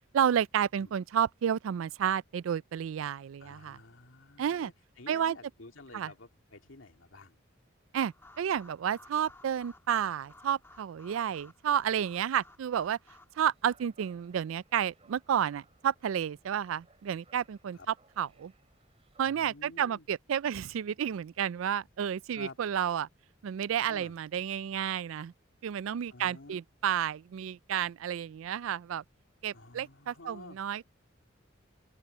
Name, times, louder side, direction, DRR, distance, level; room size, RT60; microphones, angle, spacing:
voice 1, 0.1-3.8 4.4-4.7 5.1-5.4 5.9-6.1 7.9-13.0 13.4-17.8 18.2-18.5 19.2-23.1 23.4-25.3 25.6-29.0 29.4-30.9, right 9 dB, 85° right, 0.3 m, -31 dB
voice 2, 3.4-7.4 17.7-17.9 19.2-20.1 22.3-22.6 23.9-24.1 26.1-26.6 29.5-30.6, left 3 dB, 80° left, 2.4 m, -50 dB
sound 1, 8.0-13.5, left 2 dB, 15° left, 2.1 m, -57 dB
sound 2, 13.3-19.2, right 3 dB, 30° right, 4.3 m, -65 dB
open air
head